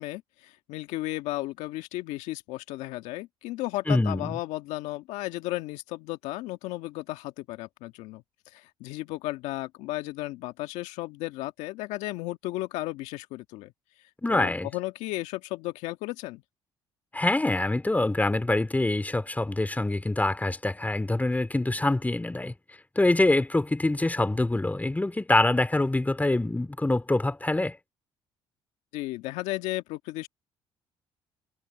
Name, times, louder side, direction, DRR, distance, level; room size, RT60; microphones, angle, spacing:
voice 1, 0.0-8.2 8.5-13.7 14.3-16.4 28.9-30.3, left 18 dB, 80° left, 1.7 m, -34 dB
voice 2, 3.9-4.3 14.2-14.7 17.1-22.5 23.0-27.8, left 2 dB, 15° left, 2.5 m, -25 dB
supercardioid pair, 65°, 12 cm